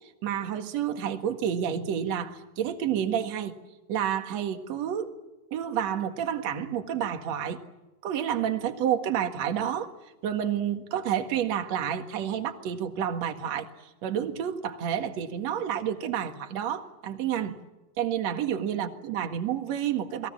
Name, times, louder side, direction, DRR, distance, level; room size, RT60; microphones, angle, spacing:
voice 1, 0.2-3.5 3.9-5.1 5.5-7.6 8.0-9.9 10.2-13.7 14.0-17.5 18.0-20.3, right 9 dB, 55° right, 6 dB, 2.7 m, -29 dB
29.5 x 21.5 x 7.5 m, 1.1 s
omnidirectional pair, 4.1 m